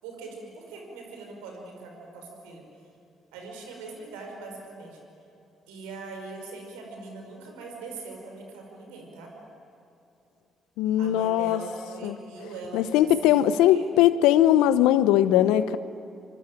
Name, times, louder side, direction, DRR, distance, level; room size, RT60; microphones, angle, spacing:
voice 1, 0.0-2.6 3.3-5.0 5.7-9.3 11.0-13.9, right 3 dB, 80° right, 2 dB, 5.4 m, -41 dB
voice 2, 10.8-11.6 12.0-12.2 12.7-15.8, left 12 dB, 75° left, 15 dB, 0.9 m, -20 dB
25.5 x 25.0 x 9.3 m, 2.8 s
hypercardioid pair, 45°, 0 cm